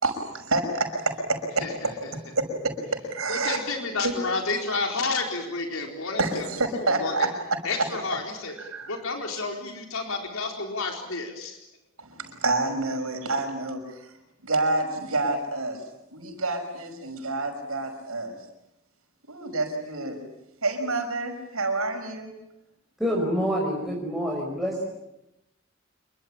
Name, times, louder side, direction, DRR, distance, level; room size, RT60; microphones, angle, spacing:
voice 1, 0.0-3.6 4.0-4.1 6.2-7.9 8.6-8.9 12.0-14.1 14.4-15.8 16.1-18.3 19.3-20.2 20.6-22.3, right 2 dB, 85° right, 6 dB, 5.8 m, -28 dB
voice 2, 1.6-1.9 3.3-6.4 7.0-7.1 7.6-8.5 8.9-11.6, left 3 dB, 75° left, 2 dB, 4.3 m, -30 dB
voice 3, 23.0-24.8, equal, ahead, -3 dB, 5.2 m, -27 dB
27.0 x 23.5 x 8.8 m, 0.90 s
head